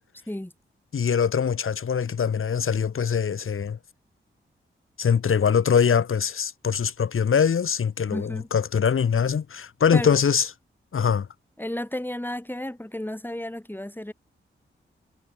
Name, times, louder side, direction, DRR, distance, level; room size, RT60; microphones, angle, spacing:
voice 1, 0.9-3.8 5.0-10.5 10.9-11.3, left 7 dB, 75° left, 7.8 m, -23 dB
voice 2, 8.1-8.5 9.9-10.2 11.6-14.1, left 1 dB, 10° left, 7.1 m, -32 dB
cardioid pair, 55°, 21 cm